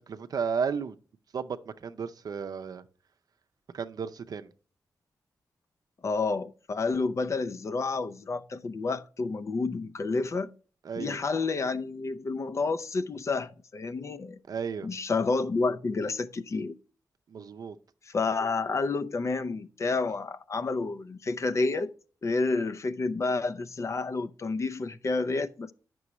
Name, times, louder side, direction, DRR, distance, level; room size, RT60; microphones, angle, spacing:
voice 1, 0.1-1.0 1.3-2.8 3.7-4.5 10.8-11.2 14.5-14.9 17.3-17.8, right 6 dB, 65° right, 0.6 m, -33 dB
voice 2, 6.0-10.5 11.0-14.4 14.8-16.8 18.1-21.9 22.2-25.7, left 3 dB, 45° left, 0.5 m, -30 dB
9.5 x 6.1 x 3.1 m
wide cardioid pair, 105°, 7 cm